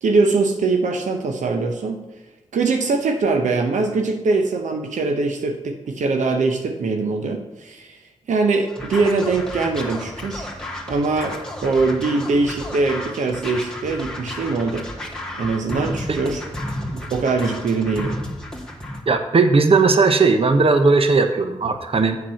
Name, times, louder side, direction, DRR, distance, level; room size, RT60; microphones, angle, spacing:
voice 1, 0.0-2.0 2.5-8.0 8.3-10.5 10.9-11.4 11.6-14.9 15.3-16.4 16.9-18.2, right 3 dB, 80° right, 4 dB, 0.8 m, -22 dB
Scratching (performance technique), 8.7-19.0, left 1 dB, 5° left, 2.0 m, -32 dB
voice 2, 19.1-22.2, right 4 dB, 50° right, 8 dB, 0.9 m, -17 dB
7.4 x 6.0 x 5.7 m, 1.0 s
supercardioid pair, 40°, 12 cm